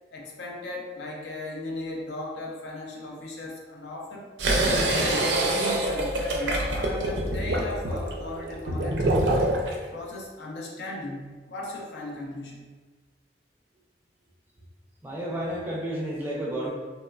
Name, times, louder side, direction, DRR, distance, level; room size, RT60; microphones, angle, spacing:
voice 1, 0.1-4.3 4.8-9.5 9.9-12.7, left 2 dB, 70° left, -1 dB, 0.5 m, -37 dB
sound 1, 4.4-9.8, right 1 dB, 75° right, 0.4 m, -25 dB
voice 2, 15.0-16.7, right 1 dB, 10° right, -4 dB, 0.4 m, -31 dB
3.0 x 2.0 x 2.3 m, 1.4 s
head